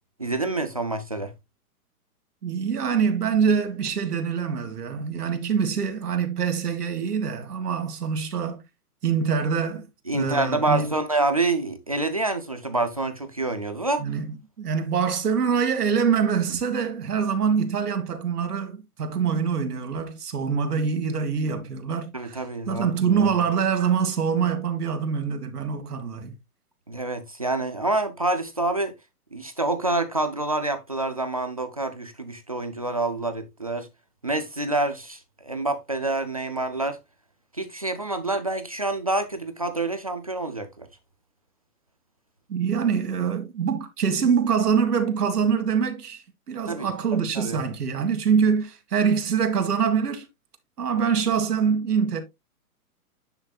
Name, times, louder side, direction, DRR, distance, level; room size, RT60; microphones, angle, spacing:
voice 1, 0.2-1.3 10.1-14.1 22.1-23.3 26.9-28.9 29.3-33.9 34.2-37.0 37.5-40.9 46.7-47.6, right 2 dB, 25° right, 0.4 m, -27 dB
voice 2, 2.4-8.6 9.0-9.9 10.1-10.9 14.0-14.3 14.6-26.3 42.5-50.3 50.8-52.2, right 6 dB, 85° right, 2.0 m, -24 dB
10.0 x 5.9 x 2.3 m
hypercardioid pair, 160°, 45 cm